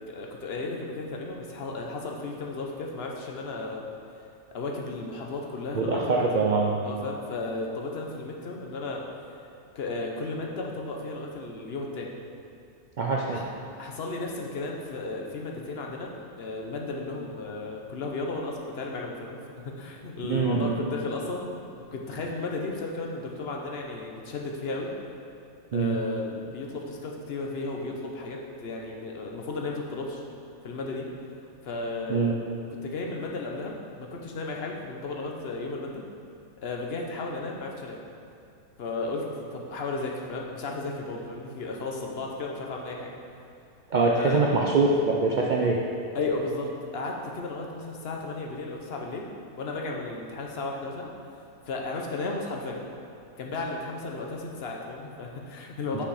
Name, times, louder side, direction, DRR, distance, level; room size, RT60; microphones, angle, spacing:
voice 1, 0.1-3.8 4.5-6.5 6.8-9.0 9.7-12.1 13.3-13.5 13.8-21.5 21.9-24.9 25.7-30.2 30.6-31.1 31.6-32.3 32.8-36.0 36.6-38.0 38.8-43.1 44.1-44.4 46.1-49.3 49.6-51.1 51.7-52.8 53.4-56.0, left 3 dB, 50° left, 0 dB, 1.0 m, -34 dB
voice 2, 5.7-6.8 13.0-13.4 20.3-20.7 25.7-26.0 32.1-32.3 43.9-45.8 55.9-56.0, right 3 dB, 70° right, -2 dB, 0.4 m, -24 dB
6.6 x 5.9 x 4.8 m, 2.6 s
omnidirectional pair, 1.6 m